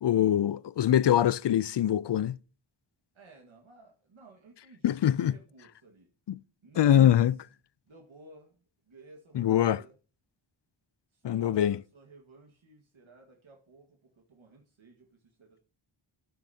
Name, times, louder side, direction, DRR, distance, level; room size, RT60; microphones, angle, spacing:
voice 1, 0.0-2.4 4.8-5.3 6.3-6.4 6.8-7.3 9.3-9.8 11.2-11.8, left 10 dB, 60° left, 0.5 m, -23 dB
voice 2, 3.1-6.1 6.6-7.1 7.9-8.5 8.9-9.9 11.1-15.6, right 3 dB, 70° right, 1.8 m, -54 dB
13.0 x 9.8 x 2.8 m
wide cardioid pair, 65°, 50 cm